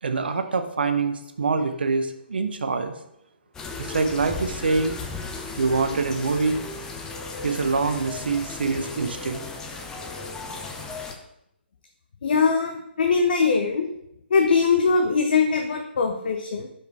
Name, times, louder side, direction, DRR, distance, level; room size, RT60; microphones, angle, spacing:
voice 1, 0.0-2.9 3.8-5.0 5.6-6.6 7.4-9.4, right 4 dB, 65° right, 8 dB, 0.7 m, -25 dB
sound 1, 3.5-11.1, left 3 dB, 10° left, 0.5 m, -35 dB
voice 2, 12.2-13.9 14.3-16.7, left 5 dB, 55° left, 4 dB, 0.6 m, -21 dB
4.9 x 4.5 x 4.6 m, 0.79 s
figure-of-eight pair, 130°, 6 cm